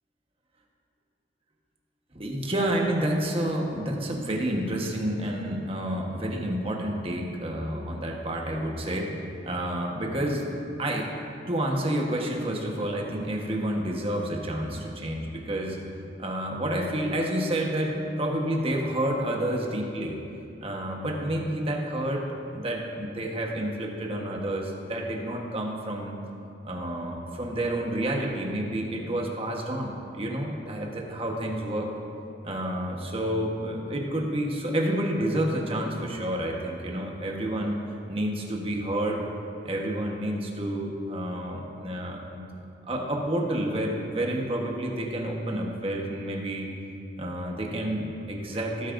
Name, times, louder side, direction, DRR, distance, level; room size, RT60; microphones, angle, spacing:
voice 1, 2.1-9.1 9.4-10.5 10.8-11.1 11.5-15.8 16.2-20.2 20.6-22.2 22.5-26.1 26.6-31.9 32.4-37.8 38.1-39.2 39.6-42.4 42.9-46.7 47.2-48.9, right 1 dB, 30° right, 0 dB, 1.2 m, -29 dB
17.5 x 8.9 x 2.6 m, 2.7 s
head